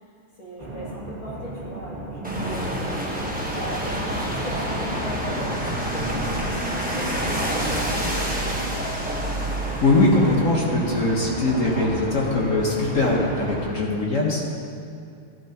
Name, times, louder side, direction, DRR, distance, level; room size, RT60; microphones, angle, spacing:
voice 1, 0.0-8.7 13.7-14.0, equal, 60° left, -7 dB, 3.4 m, -37 dB
sound 1, 0.6-8.2, right 1 dB, 25° right, 1.5 m, -35 dB
sound 2, 2.2-13.7, equal, 5° right, 0.6 m, -29 dB
sound 3, 5.7-12.5, right 2 dB, 65° right, 1.2 m, -37 dB
voice 2, 9.8-14.5, left 2 dB, 45° left, -3 dB, 1.3 m, -21 dB
13.5 x 12.0 x 3.0 m, 2.5 s
omnidirectional pair, 2.4 m